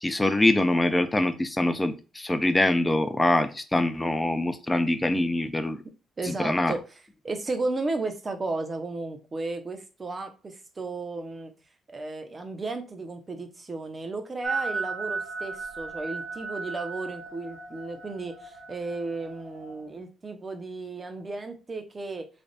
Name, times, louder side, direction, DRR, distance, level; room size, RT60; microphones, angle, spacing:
voice 1, 0.0-5.8 6.3-6.7, left 1 dB, 15° left, 0.5 m, -24 dB
voice 2, 6.2-11.5 11.9-22.3, right 3 dB, 30° right, 0.8 m, -34 dB
sound 1, 14.4-19.8, right 4 dB, 65° right, 1.1 m, -36 dB
3.4 x 2.4 x 4.0 m
cardioid pair, 90°, 0 cm